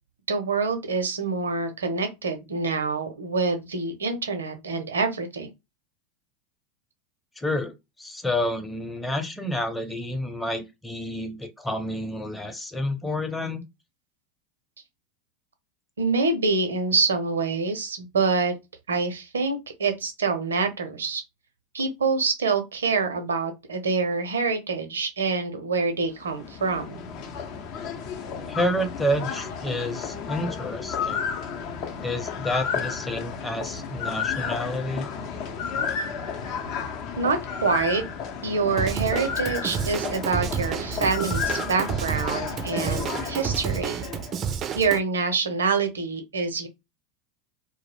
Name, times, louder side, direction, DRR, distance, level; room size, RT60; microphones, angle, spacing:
voice 1, 0.3-5.5 16.0-18.5 18.9-21.2 21.7-27.1 37.2-38.0 38.4-44.0 44.8-46.7, right 4 dB, 85° right, 0.6 m, -26 dB
voice 2, 7.4-7.7 8.0-13.6 28.5-31.3 32.0-35.1, left 1 dB, 10° left, 0.7 m, -29 dB
sound 1, 26.1-44.5, left 6 dB, 50° left, 0.6 m, -32 dB
Drum kit / Drum, 38.8-45.0, right 7 dB, 35° right, 0.4 m, -30 dB
2.3 x 2.0 x 3.2 m
hypercardioid pair, 90°, 0 cm